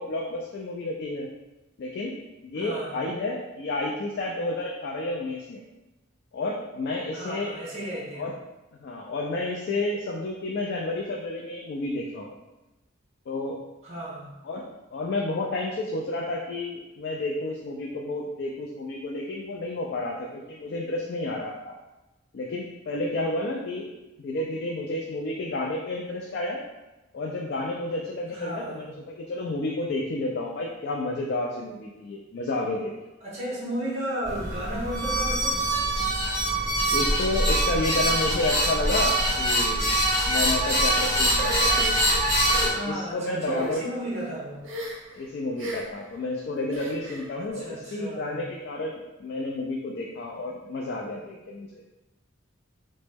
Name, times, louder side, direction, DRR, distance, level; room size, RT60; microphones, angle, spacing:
voice 1, 0.0-1.3 1.8-2.2 2.4-5.6 6.3-7.5 8.1-8.3 8.8-12.4 13.3-13.6 14.4-21.7 22.3-23.9 24.2-26.6 27.1-32.9 36.9-39.9 40.3-42.0 42.5-43.8 45.1-51.8, left 2 dB, 55° left, -1 dB, 0.3 m, -31 dB
voice 2, 2.6-3.0 7.1-8.3 13.8-14.3 28.3-28.8 33.2-35.6 42.7-44.6 47.4-48.5, equal, 35° right, -5 dB, 0.7 m, -34 dB
sound 1, 34.2-42.7, right 1 dB, 20° right, 1.1 m, -24 dB
sound 2, 41.4-42.7 43.4-43.7 44.6-45.1 45.6-46.0 46.7-47.3, right 1 dB, 75° right, 0.6 m, -34 dB
3.0 x 2.1 x 3.3 m, 1.0 s
head